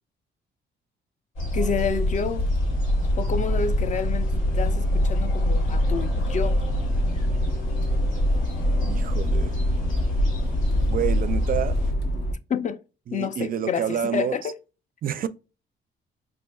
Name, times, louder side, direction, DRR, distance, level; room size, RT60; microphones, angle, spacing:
sound 1, 1.4-11.9, left 1 dB, 85° left, 1.8 m, -25 dB
voice 1, 1.5-2.5 3.2-6.6 12.5-12.8 13.1-14.5, left 6 dB, 40° left, 0.5 m, -29 dB
Accelerating revving vroom, 1.8-12.3, equal, 60° left, 0.9 m, -30 dB
voice 2, 8.8-9.6 10.9-11.8 13.1-14.4 15.0-15.3, right 9 dB, 45° right, 0.4 m, -28 dB
4.9 x 2.5 x 2.3 m
cardioid pair, 90°, 20 cm